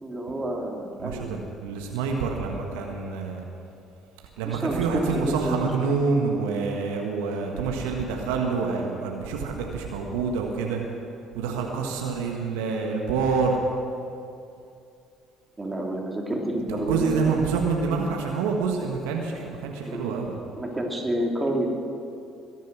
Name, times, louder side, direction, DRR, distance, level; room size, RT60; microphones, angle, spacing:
voice 1, 0.0-1.3 4.4-5.6 15.6-17.3 19.8-20.1 20.6-21.8, right 1 dB, 20° right, 0 dB, 3.2 m, -29 dB
voice 2, 1.0-3.5 4.4-10.8 11.3-13.6 16.7-20.4, right 5 dB, 80° right, 1 dB, 1.5 m, -27 dB
21.0 x 9.3 x 6.2 m, 2.5 s
hypercardioid pair, 60°, 0 cm